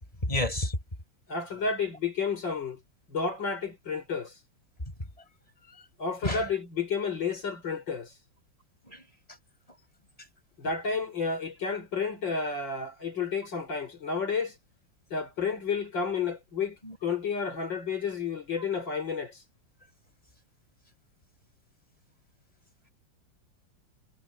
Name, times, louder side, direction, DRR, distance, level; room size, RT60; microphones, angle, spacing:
voice 1, 0.2-0.8 6.2-6.4 8.9-9.0 16.8-16.9, left 1 dB, 15° left, 5.8 m, -29 dB
voice 2, 1.3-2.8 3.1-4.3 6.0-8.1 10.6-14.5 15.1-16.8 17.0-19.4, left 5 dB, 55° left, 5.9 m, -31 dB
omnidirectional pair, 2.4 m